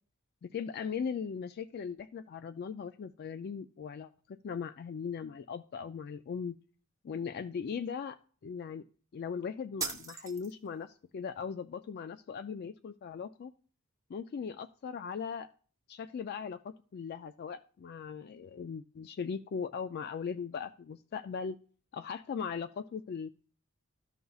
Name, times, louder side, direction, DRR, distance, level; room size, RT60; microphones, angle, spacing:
voice 1, 0.4-6.6 7.0-8.2 8.4-8.8 9.1-13.5 14.1-15.5 15.9-21.6 21.9-23.3, left 6 dB, 50° left, 11 dB, 0.3 m, -39 dB
sound 1, 9.8-10.8, right 5 dB, 15° right, 0.9 m, -39 dB
13.5 x 5.4 x 2.3 m, 0.41 s
head